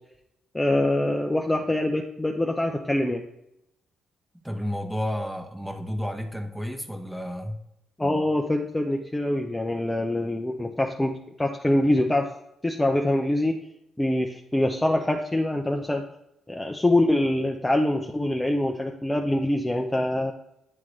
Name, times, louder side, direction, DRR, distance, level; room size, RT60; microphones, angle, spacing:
voice 1, 0.5-3.2 8.0-12.3 12.6-13.6 14.0-16.0 16.5-20.3, left 1 dB, 10° left, 2 dB, 0.6 m, -24 dB
voice 2, 4.4-7.6, equal, 5° right, 3 dB, 1.0 m, -31 dB
9.8 x 3.7 x 3.2 m, 0.82 s
cardioid pair, 90°, 0 cm